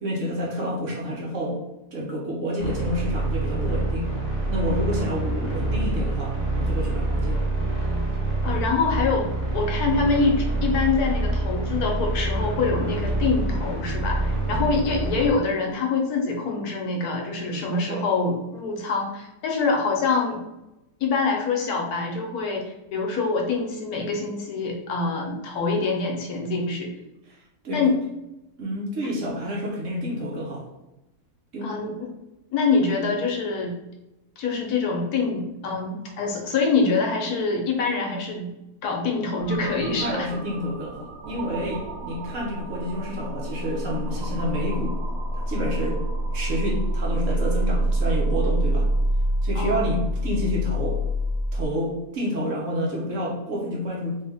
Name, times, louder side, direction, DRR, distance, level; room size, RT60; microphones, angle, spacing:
voice 1, 0.0-1.6 1.9-4.1 4.5-7.4 14.5-14.7 17.5-18.0 27.3-27.4 27.6-27.8 28.6-30.7 31.5-31.7 39.8-45.0 45.5-46.0 46.3-48.9 49.4-51.0 51.5-54.2, equal, 60° right, -3 dB, 1.0 m, -29 dB
sound 1, 2.6-15.3, right 2 dB, 30° right, 1.0 m, -26 dB
voice 2, 8.4-20.4 21.0-26.9 27.7-28.0 31.6-32.1 32.5-33.7 34.4-38.5 38.8-40.3 49.5-49.9, left 4 dB, 75° left, 1 dB, 1.2 m, -25 dB
sound 2, 39.4-51.6, right 1 dB, 90° right, 0.5 m, -27 dB
3.2 x 2.7 x 3.4 m, 0.95 s
omnidirectional pair, 1.7 m